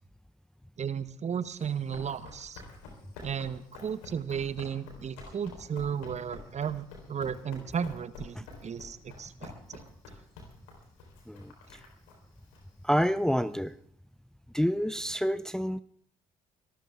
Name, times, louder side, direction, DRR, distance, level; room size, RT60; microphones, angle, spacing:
voice 1, 0.8-2.6 3.2-9.8, right 7 dB, 45° right, 15 dB, 1.0 m, -34 dB
Run, 1.4-13.7, left 3 dB, 85° left, 3.8 m, -49 dB
voice 2, 12.8-13.7 14.5-15.8, equal, 5° left, 15 dB, 0.6 m, -28 dB
24.0 x 13.0 x 3.5 m, 0.63 s
hypercardioid pair, 50°, 17 cm